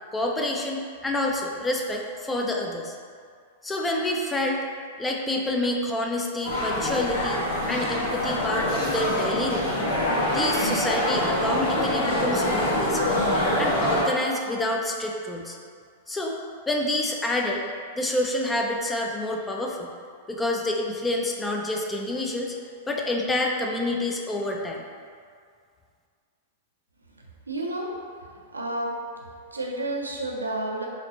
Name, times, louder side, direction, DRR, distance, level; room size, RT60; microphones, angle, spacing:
voice 1, 0.1-2.9 3.6-4.7 5.0-7.4 7.7-9.8 10.3-13.2 13.6-15.6 16.1-16.4 16.7-17.7 18.0-19.9 20.3-22.6 22.9-24.8, left 1 dB, 10° left, 0 dB, 0.5 m, -28 dB
sound 1, 6.4-14.0, left 1 dB, 55° left, 1.3 m, -25 dB
voice 2, 27.2-27.9 28.2-29.0 29.5-30.9, right 1 dB, 80° right, -1 dB, 0.6 m, -31 dB
4.9 x 3.0 x 2.8 m, 2.1 s
figure-of-eight pair, 95°, 0 cm